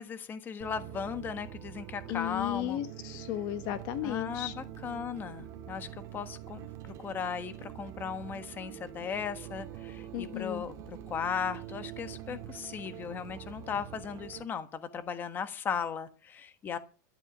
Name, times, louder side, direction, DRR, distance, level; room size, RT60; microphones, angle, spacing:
voice 1, 0.0-2.8 4.0-16.8, left 7 dB, 20° left, 10 dB, 1.4 m, -37 dB
sound 1, 0.6-14.4, right 11 dB, 35° right, 2.0 m, -45 dB
voice 2, 2.1-4.5 10.1-10.6, left 13 dB, 40° left, 11 dB, 1.2 m, -34 dB
13.0 x 11.0 x 8.4 m, 0.37 s
supercardioid pair, 160°, 10 cm